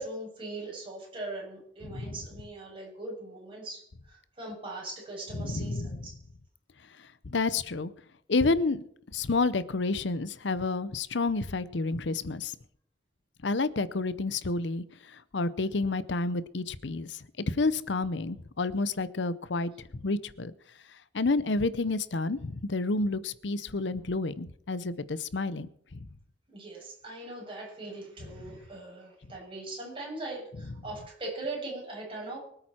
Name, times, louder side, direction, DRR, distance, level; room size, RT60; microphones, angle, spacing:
voice 1, 0.0-6.2 26.5-32.4, right 2 dB, 30° right, -2 dB, 7.4 m, -40 dB
voice 2, 1.9-2.2 5.4-5.9 7.3-7.9 8.3-8.8 9.1-12.5 13.4-20.5 21.1-26.1, left 3 dB, 70° left, 16 dB, 0.7 m, -30 dB
24.0 x 8.9 x 4.4 m, 0.68 s
head